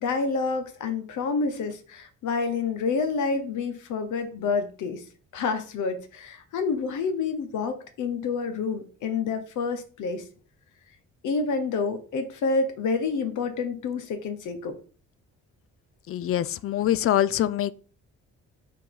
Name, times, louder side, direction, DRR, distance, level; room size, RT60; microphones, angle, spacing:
voice 1, 0.0-5.0 5.3-10.2 11.2-14.8, left 4 dB, 75° left, 1.1 m, -28 dB
voice 2, 16.1-17.7, left 12 dB, 50° left, 0.5 m, -24 dB
5.8 x 4.0 x 4.7 m
cardioid pair, 90°, 30 cm